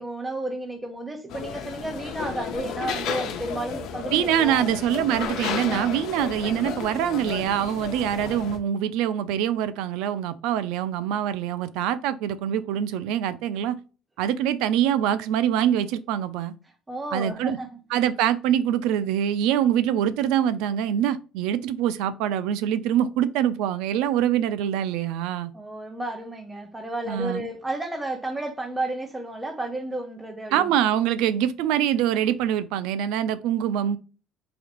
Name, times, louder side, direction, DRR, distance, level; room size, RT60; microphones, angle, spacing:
voice 1, 0.0-4.7 5.7-5.9 16.9-17.8 25.5-30.7, right 2 dB, 10° right, 0.9 m, -32 dB
sound 1, 1.3-8.6, left 7 dB, 65° left, 0.7 m, -33 dB
voice 2, 4.1-13.8 14.2-16.5 17.1-17.6 17.9-25.5 27.1-27.5 30.5-34.0, right 10 dB, 85° right, 0.4 m, -24 dB
4.1 x 2.9 x 2.9 m
cardioid pair, 130°, 0 cm